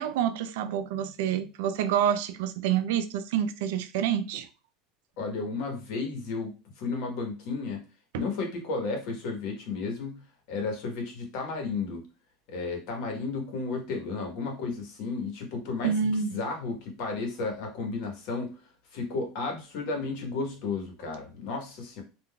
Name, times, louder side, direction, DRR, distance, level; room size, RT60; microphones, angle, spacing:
voice 1, 0.0-4.5 8.1-8.2 15.8-16.3, right 8 dB, 75° right, 0.4 m, -27 dB
voice 2, 5.2-7.8 8.1-12.1 12.5-18.6 18.9-22.0, left 4 dB, 55° left, 1.1 m, -33 dB
3.7 x 2.4 x 2.2 m
supercardioid pair, 150°, 0 cm